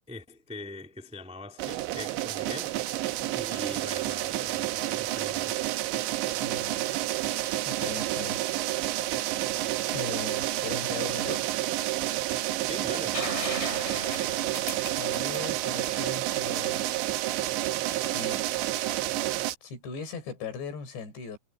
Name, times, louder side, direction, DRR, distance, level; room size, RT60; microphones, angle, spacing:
voice 1, 0.1-3.1 3.3-5.6 12.6-13.3, left 2 dB, 10° right, 0.3 m, -43 dB
sound 1, 1.6-19.5, right 15 dB, 75° right, 3.1 m, -29 dB
voice 2, 6.4-6.9 7.7-8.4 9.9-11.5 15.0-16.8 18.0-18.5 19.6-21.4, left 5 dB, 55° left, 7.4 m, -39 dB
sound 2, 13.1-16.8 18.7-18.8, left 2 dB, 15° left, 3.5 m, -37 dB
omnidirectional pair, 5.9 m